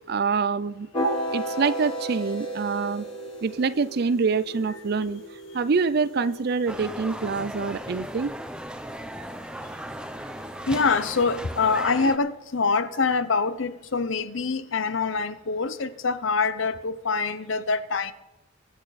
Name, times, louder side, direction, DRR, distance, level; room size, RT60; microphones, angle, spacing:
voice 1, 0.1-3.1 3.4-5.2 5.5-8.3, right 5 dB, 50° right, 0.4 m, -26 dB
sound 1, 0.9-7.0, equal, 30° left, 4.5 m, -34 dB
sound 2, 6.7-12.2, right 1 dB, 5° right, 0.6 m, -36 dB
voice 2, 10.7-18.1, left 4 dB, 70° left, 0.8 m, -25 dB
22.5 x 8.8 x 4.1 m
head